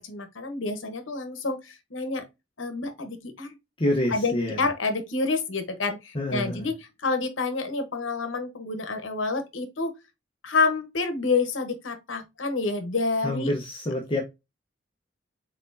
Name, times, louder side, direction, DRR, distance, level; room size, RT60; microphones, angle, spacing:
voice 1, 0.0-2.2 2.6-3.5 4.1-6.7 7.0-9.9 10.4-13.5, left 3 dB, 75° left, 1.0 m, -28 dB
voice 2, 3.8-4.6 6.1-6.7 13.2-14.2, left 1 dB, 25° left, 0.8 m, -27 dB
4.2 x 4.0 x 2.6 m
head